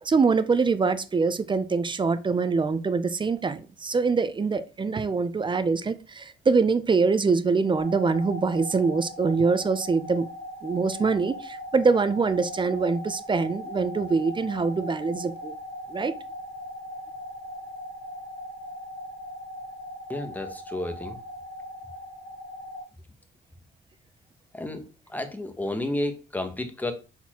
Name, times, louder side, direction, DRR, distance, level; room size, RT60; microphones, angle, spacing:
voice 1, 0.0-10.3 10.6-15.6 15.9-16.1, right 4 dB, 25° right, 0.4 m, -24 dB
sound 1, 7.8-22.8, left 1 dB, 60° left, 1.6 m, -39 dB
voice 2, 20.1-21.2 24.5-24.8 25.1-26.9, left 1 dB, 10° left, 0.8 m, -31 dB
4.2 x 4.0 x 2.9 m
cardioid pair, 90°, 20 cm